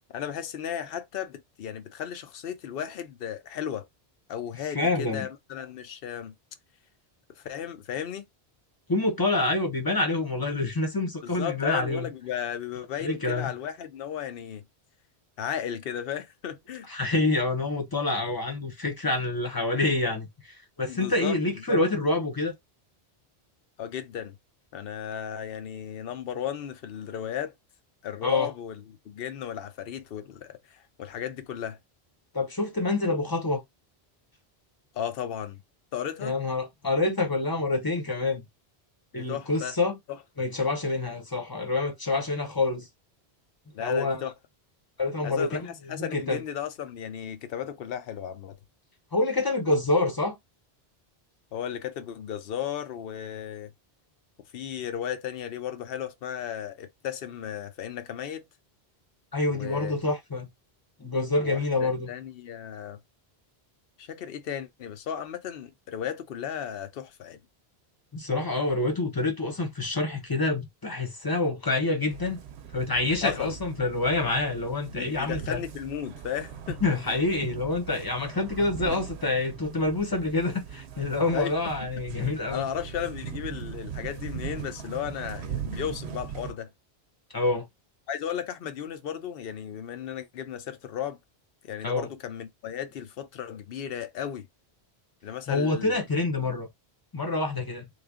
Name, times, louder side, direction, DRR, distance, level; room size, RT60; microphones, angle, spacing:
voice 1, 0.1-3.9 4.3-6.4 7.4-8.3 11.2-14.6 15.4-16.9 20.9-21.8 23.8-24.4 24.7-27.5 28.0-31.8 34.9-35.6 35.9-36.3 39.1-39.7 40.1-40.5 43.7-44.3 45.2-48.6 51.5-53.7 54.5-58.5 59.5-60.0 61.4-63.0 64.0-67.4 73.2-73.5 74.9-76.8 77.1-77.2 81.3-81.5 82.5-86.7 88.1-91.2 91.6-94.4 95.2-96.0, left 9 dB, 65° left, 0.8 m, -35 dB
voice 2, 4.7-5.3 8.9-12.1 13.0-13.6 16.9-22.5 28.2-28.5 32.3-33.6 36.2-38.5 39.1-40.0 40.4-42.9 43.8-44.3 45.0-46.4 49.1-50.4 59.3-60.5 61.0-62.1 68.1-72.4 72.7-75.6 76.8-82.7 87.3-87.7 91.8-92.1 95.5-96.7 97.1-97.9, left 2 dB, 25° left, 0.8 m, -27 dB
sound 1, 72.1-86.5, right 8 dB, 85° right, 0.8 m, -40 dB
3.2 x 2.3 x 3.5 m
omnidirectional pair, 1.1 m